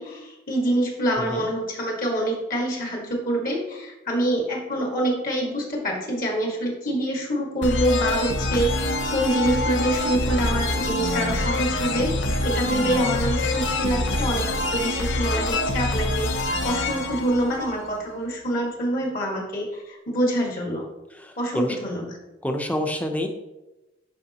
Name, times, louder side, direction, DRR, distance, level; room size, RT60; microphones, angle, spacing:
voice 1, 0.0-20.9 21.4-22.2, right 1 dB, 50° left, -1 dB, 1.9 m, -26 dB
sound 1, 7.6-18.2, left 2 dB, 80° left, 0.7 m, -25 dB
voice 2, 21.2-21.8 22.4-23.3, left 1 dB, 10° left, 4 dB, 0.7 m, -27 dB
11.0 x 5.1 x 3.0 m, 1.0 s
head